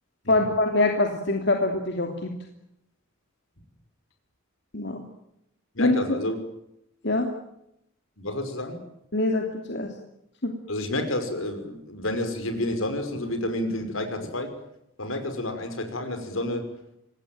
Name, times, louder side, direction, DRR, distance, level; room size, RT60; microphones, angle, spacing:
voice 1, 0.3-2.3 4.7-5.0 5.8-6.0 7.0-7.3 9.1-9.9 10.4-10.5, left 2 dB, 55° left, 3 dB, 2.9 m, -24 dB
voice 2, 5.7-6.3 8.2-8.8 10.7-14.5 15.0-16.6, left 1 dB, 80° left, 7 dB, 5.8 m, -30 dB
26.0 x 19.5 x 9.0 m, 0.80 s
head